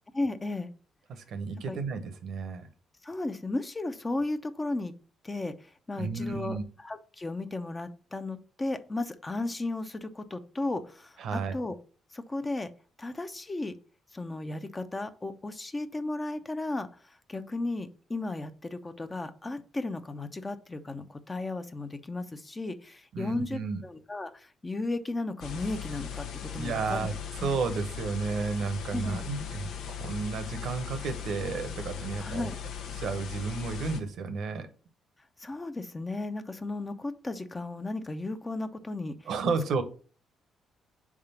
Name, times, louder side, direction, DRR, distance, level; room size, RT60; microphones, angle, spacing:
voice 1, 0.1-0.7 1.7-1.8 3.0-4.9 5.2-5.5 5.9-11.8 12.1-12.7 13.0-13.7 14.1-16.9 17.3-26.3 26.5-27.1 27.4-27.5 28.9-29.2 32.2-32.6 35.4-39.3, left 2 dB, 20° left, 0.6 m, -35 dB
voice 2, 1.1-2.7 6.0-6.6 11.2-11.6 23.1-23.8 26.5-27.1 27.4-32.5 33.0-34.7 39.3-39.8, right 4 dB, 70° right, 0.9 m, -32 dB
sound 1, 25.4-34.0, left 7 dB, 80° left, 0.8 m, -38 dB
4.8 x 3.6 x 5.6 m
cardioid pair, 90°, 0 cm